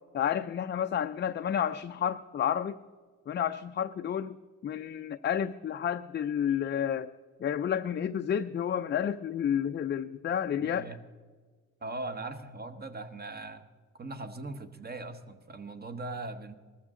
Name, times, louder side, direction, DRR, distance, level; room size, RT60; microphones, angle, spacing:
voice 1, 0.1-2.8 3.3-4.4 4.6-7.1 7.4-10.9, left 9 dB, 35° left, 0.4 m, -30 dB
voice 2, 10.6-11.0 11.8-13.6 14.0-16.5, right 2 dB, 30° right, 1.1 m, -40 dB
19.5 x 14.0 x 3.7 m
cardioid pair, 110°, 30 cm